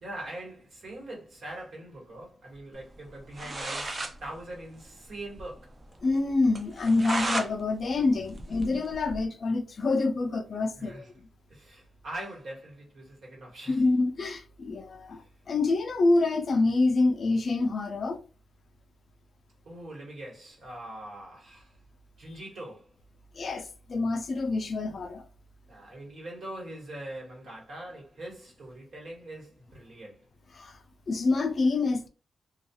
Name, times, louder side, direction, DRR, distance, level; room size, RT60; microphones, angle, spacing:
voice 1, 0.0-5.7 10.8-11.1 11.5-13.8 19.6-21.8 22.2-22.9 25.7-30.2, right 1 dB, 60° right, 1.2 m, -42 dB
sound 1, 3.1-3.2 3.3-4.2 4.5-4.6 4.8-4.9 5.3-5.4 5.8-5.9 6.6-7.5 7.9-9.2, right 2 dB, 25° right, 0.4 m, -33 dB
voice 2, 6.0-11.1 13.7-18.2 23.3-25.3 30.5-30.8 31.1-32.1, left 3 dB, 40° left, 0.3 m, -26 dB
2.3 x 2.3 x 2.8 m
wide cardioid pair, 170°, 0 cm